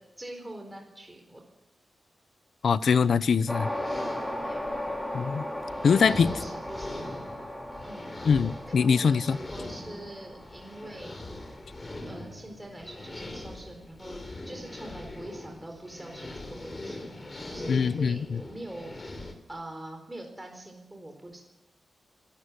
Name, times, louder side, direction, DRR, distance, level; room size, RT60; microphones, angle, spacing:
voice 1, 0.2-1.4 4.4-4.7 5.8-7.2 7.8-8.1 8.7-11.2 12.1-17.1 17.5-19.0 19.5-21.4, right 1 dB, 10° right, 2 dB, 4.2 m, -43 dB
voice 2, 2.6-3.7 5.1-5.4 5.8-6.3 8.3-9.4 17.7-18.4, left 6 dB, 70° left, 16 dB, 0.7 m, -23 dB
sound 1, 3.4-19.3, left 2 dB, 30° left, 3.7 m, -42 dB
sound 2, 3.5-12.0, left 1 dB, 10° left, 4.3 m, -37 dB
25.0 x 13.0 x 9.8 m, 0.97 s
wide cardioid pair, 125°, 0 cm